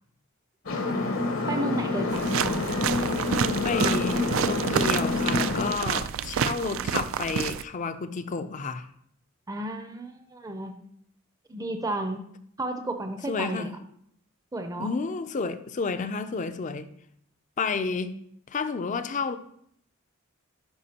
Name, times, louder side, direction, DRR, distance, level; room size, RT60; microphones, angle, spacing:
sound 1, 0.7-5.7, left 2 dB, 70° left, 1.0 m, -27 dB
voice 1, 0.7-2.6 9.5-10.8 11.5-12.2 12.6-13.7 14.5-14.9, right 1 dB, 15° right, 0.5 m, -33 dB
sound 2, 2.1-7.6, right 8 dB, 70° right, 0.3 m, -29 dB
voice 2, 3.6-8.9 13.3-13.8 14.8-16.9 17.6-18.2 18.5-19.4, left 4 dB, 35° left, 0.4 m, -31 dB
11.5 x 4.9 x 2.8 m
head